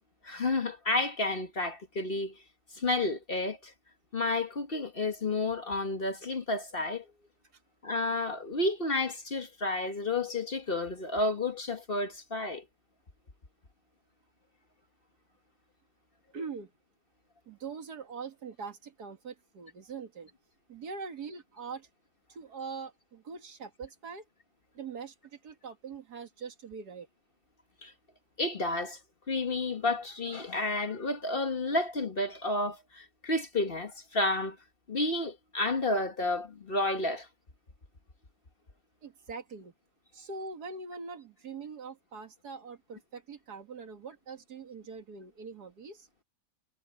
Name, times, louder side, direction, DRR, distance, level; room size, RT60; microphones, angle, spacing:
voice 1, 0.2-2.4 2.7-3.7 4.1-7.0 7.8-12.6 27.8-27.9 28.4-29.0 29.3-34.6 34.9-37.3, left 2 dB, 35° left, 1.6 m, -31 dB
voice 2, 16.3-16.7 17.5-20.3 20.7-21.9 22.3-24.3 24.7-27.1 39.0-39.7 40.1-46.1, right 5 dB, 75° right, 2.4 m, -43 dB
omnidirectional pair, 1.7 m